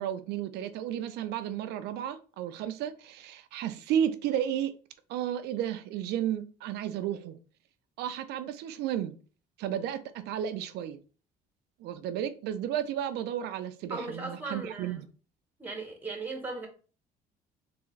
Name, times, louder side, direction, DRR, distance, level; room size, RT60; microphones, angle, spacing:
voice 1, 0.0-4.8 5.1-7.4 8.0-9.1 9.6-11.0 11.8-15.0, right 10 dB, 80° right, 0.5 m, -33 dB
voice 2, 13.9-15.0 15.6-16.7, right 3 dB, 10° right, 1.1 m, -37 dB
3.5 x 3.4 x 3.1 m
cardioid pair, 110°, 17 cm